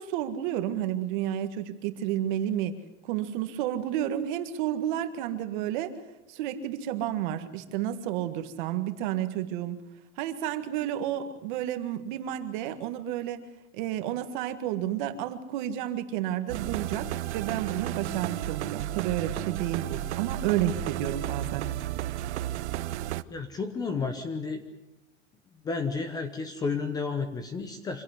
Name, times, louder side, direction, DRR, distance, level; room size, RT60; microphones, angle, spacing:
voice 1, 0.0-2.8 3.0-6.0 6.3-9.8 10.2-13.5 13.7-21.8, right 11 dB, 40° right, 9 dB, 1.8 m, -31 dB
sound 1, 16.5-23.2, right 13 dB, 65° right, 0.9 m, -33 dB
voice 2, 23.3-24.6 25.6-28.0, left 4 dB, 10° left, 9 dB, 0.9 m, -31 dB
25.5 x 17.0 x 8.1 m, 0.93 s
supercardioid pair, 175°, 36 cm